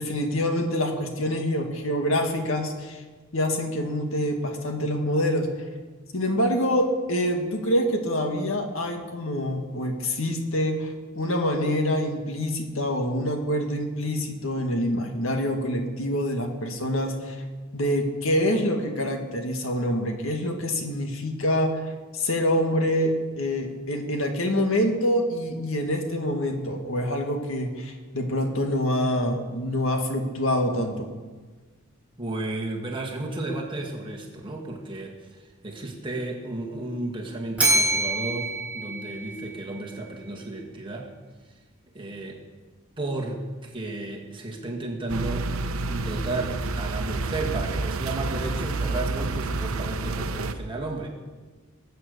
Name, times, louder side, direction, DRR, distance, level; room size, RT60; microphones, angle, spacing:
voice 1, 0.0-3.0 3.3-5.5 6.1-17.4 17.7-21.8 22.1-31.1, equal, 70° left, 4 dB, 1.9 m, -26 dB
voice 2, 32.2-41.1 41.9-42.4 43.0-45.5 45.9-51.1, right 2 dB, 25° right, -1 dB, 2.1 m, -33 dB
Bell, 37.6-39.8, right 1 dB, 5° right, 4.0 m, -25 dB
sound 1, 45.1-50.5, right 3 dB, 80° right, 0.8 m, -29 dB
20.5 x 8.0 x 6.8 m, 1.4 s
head